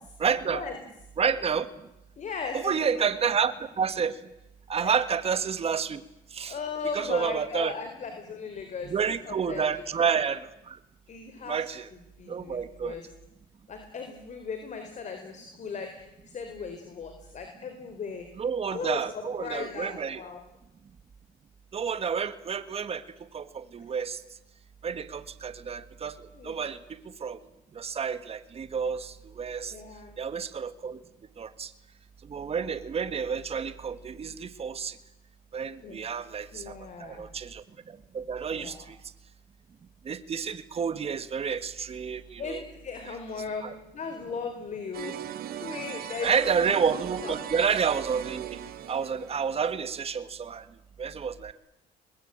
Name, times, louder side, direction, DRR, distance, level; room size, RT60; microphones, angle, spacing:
voice 1, 0.2-0.6 1.2-1.7 2.5-4.2 4.7-6.0 6.3-6.6 6.9-7.7 8.8-10.8 11.5-11.9 12.3-13.0 18.4-20.2 21.7-23.0 23.3-24.2 24.8-26.2 26.4-27.4 27.8-29.7 30.2-31.0 31.4-31.7 32.3-35.0 35.5-36.8 37.0-37.6 38.1-39.0 40.1-42.6 43.1-43.8 46.2-48.6 48.9-50.6 51.0-51.5, right 6 dB, 35° right, 11 dB, 1.8 m, -29 dB
voice 2, 2.2-3.1 4.8-4.9 6.5-8.9 9.3-9.8 11.1-11.7 12.2-13.0 13.7-18.3 18.7-20.4 26.3-26.6 29.7-30.1 35.8-36.1 36.5-37.2 38.5-38.9 42.4-45.2 45.6-46.3 46.7-46.8 47.2-47.3, left 5 dB, 45° left, 6 dB, 4.3 m, -37 dB
sound 1, 44.9-49.8, right 11 dB, 65° right, 2.2 m, -39 dB
23.5 x 21.0 x 9.0 m, 0.87 s
cardioid pair, 110°, 17 cm